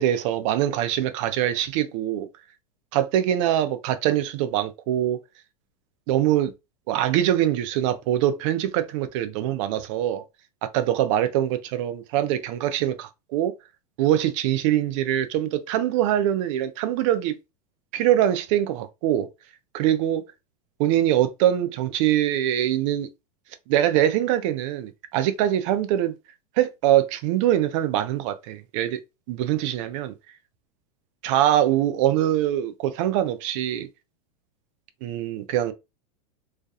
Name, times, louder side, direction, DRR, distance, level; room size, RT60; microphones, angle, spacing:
voice 1, 0.0-2.3 2.9-5.2 6.1-6.5 6.9-10.2 10.7-13.5 14.0-17.3 17.9-19.3 19.7-20.2 20.8-23.1 23.7-26.1 26.6-29.0 29.3-30.1 31.2-33.9 35.0-35.7, right 12 dB, 55° right, 0.5 m, -23 dB
2.4 x 2.2 x 2.7 m
hypercardioid pair, 115°, 19 cm